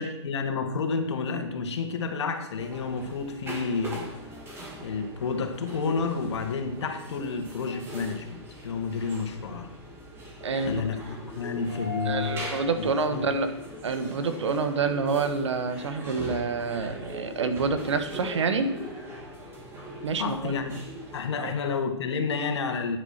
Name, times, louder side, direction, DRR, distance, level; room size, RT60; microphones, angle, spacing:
voice 1, 0.0-4.1 4.8-9.7 10.7-12.5 12.7-13.3 20.2-20.8 21.1-23.0, left 5 dB, 70° left, 6 dB, 1.9 m, -30 dB
sound 1, 2.6-21.2, equal, 15° right, 2.4 m, -40 dB
voice 2, 10.4-10.8 12.0-13.5 13.8-18.7 20.0-20.6 21.3-21.5, right 4 dB, 80° right, 9 dB, 1.5 m, -27 dB
9.8 x 8.0 x 5.9 m, 0.87 s
hypercardioid pair, 150°, 15 cm